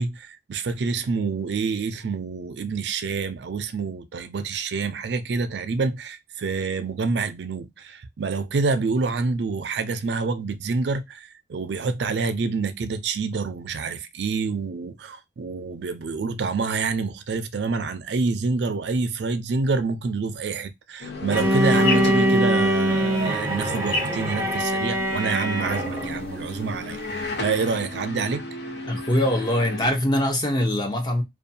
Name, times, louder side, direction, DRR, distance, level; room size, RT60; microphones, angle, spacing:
voice 1, 0.0-27.0 27.4-28.5, right 4 dB, 75° right, 0.4 m, -27 dB
sound 1, 21.0-30.0, left 2 dB, 70° left, 0.7 m, -32 dB
sound 2, 21.3-27.8, left 3 dB, 85° left, 1.1 m, -36 dB
Bowed string instrument, 21.3-26.2, right 1 dB, 15° right, 0.5 m, -23 dB
voice 2, 28.9-31.2, left 1 dB, 25° left, 0.6 m, -23 dB
2.5 x 2.2 x 2.6 m
head